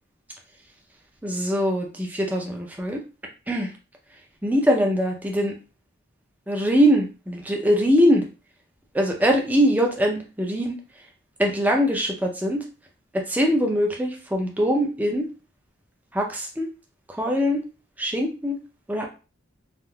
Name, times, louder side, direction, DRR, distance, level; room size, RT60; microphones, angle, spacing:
voice 1, 1.2-3.0 3.5-3.7 4.4-5.5 6.5-8.2 8.9-10.8 11.4-12.6 13.1-15.3 16.1-16.7 17.2-17.6 18.0-18.6 18.9-19.1, equal, 10° right, 1 dB, 0.5 m, -22 dB
3.6 x 2.5 x 2.2 m, 0.33 s
head